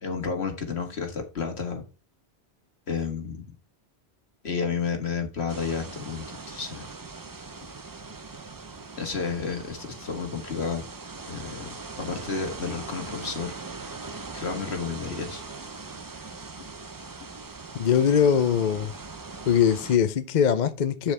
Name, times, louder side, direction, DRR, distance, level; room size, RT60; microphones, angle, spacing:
voice 1, 0.0-1.8 2.9-3.5 4.4-6.9 9.0-10.9 11.3-11.7 12.0-13.5 13.8-13.9 14.3-15.4, left 5 dB, 75° left, 1.8 m, -31 dB
sound 1, 5.5-20.0, right 4 dB, 25° right, 0.5 m, -40 dB
voice 2, 17.8-18.9 19.5-21.1, left 8 dB, 50° left, 0.6 m, -22 dB
7.3 x 6.9 x 3.3 m
omnidirectional pair, 1.1 m